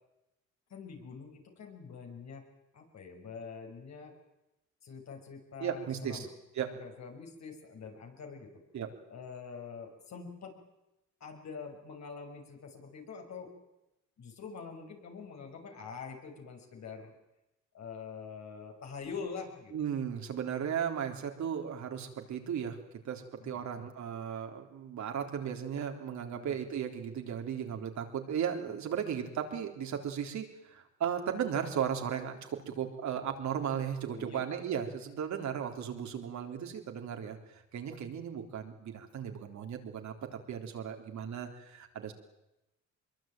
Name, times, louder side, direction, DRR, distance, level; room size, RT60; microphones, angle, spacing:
voice 1, 0.7-2.4 2.7-4.1 4.8-6.3 6.7-8.6 9.1-10.5 11.2-13.5 14.2-17.2 17.7-19.7 23.4-23.9 26.3-26.6 28.7-28.8 34.1-34.4, left 5 dB, 60° left, 3 dB, 6.3 m, -45 dB
voice 2, 5.6-6.3 6.6-6.7 8.7-8.9 19.7-22.8 23.0-40.1 40.5-42.1, right 8 dB, 70° right, 4 dB, 3.8 m, -36 dB
23.5 x 22.0 x 9.2 m, 0.93 s
cardioid pair, 90°, 30 cm